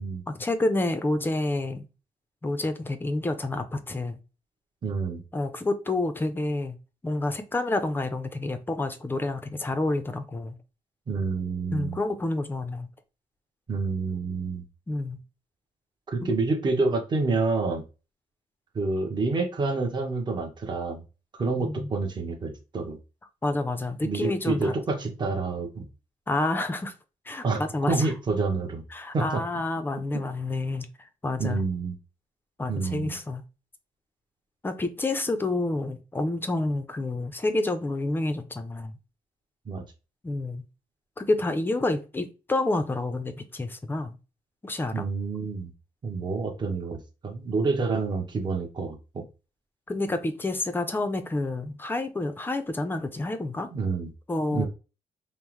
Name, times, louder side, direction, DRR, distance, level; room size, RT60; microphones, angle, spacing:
voice 1, 0.3-1.8 2.4-4.2 5.3-6.8 7.0-10.6 11.7-12.9 14.9-15.2 16.2-16.3 21.6-21.9 23.4-24.7 26.3-26.9 27.3-28.1 28.9-30.9 31.2-31.6 32.6-33.4 34.6-38.9 40.2-40.6 41.2-44.2 44.6-45.0 49.9-53.7 54.3-54.7, left 2 dB, 15° left, 0.4 m, -29 dB
voice 2, 4.8-5.2 11.1-12.0 13.7-14.6 16.1-17.8 18.7-21.0 21.3-23.0 24.0-25.9 27.4-27.6 27.9-28.8 29.1-29.4 31.4-31.9 32.7-33.2 39.7-39.8 44.9-45.7 46.0-49.3 53.7-54.1 54.5-54.7, right 3 dB, 30° right, 0.8 m, -28 dB
5.4 x 2.0 x 3.0 m
wide cardioid pair, 175°, 14 cm